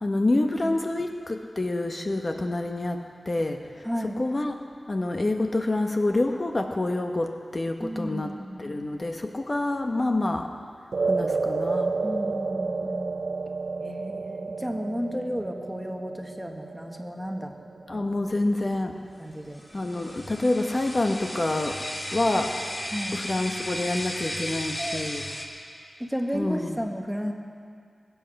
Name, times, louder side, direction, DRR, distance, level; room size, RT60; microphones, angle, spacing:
voice 1, 0.0-3.0 3.3-3.9 4.2-4.5 4.9-8.3 8.6-10.5 11.0-11.9 17.9-19.0 19.7-21.8 22.1-22.5 23.1-25.2 26.3-26.8, left 2 dB, 40° left, 4 dB, 0.9 m, -27 dB
voice 2, 3.8-4.2 7.8-8.7 12.0-13.2 13.8-17.5 19.2-19.6 22.9-23.2 24.8-25.1 26.0-27.3, equal, 5° right, 2 dB, 1.4 m, -33 dB
sound 1, 10.9-19.4, right 4 dB, 75° right, 0.6 m, -31 dB
sound 2, 19.6-25.5, equal, 25° left, 1.8 m, -35 dB
22.0 x 8.1 x 6.4 m, 2.3 s
wide cardioid pair, 70°, 0 cm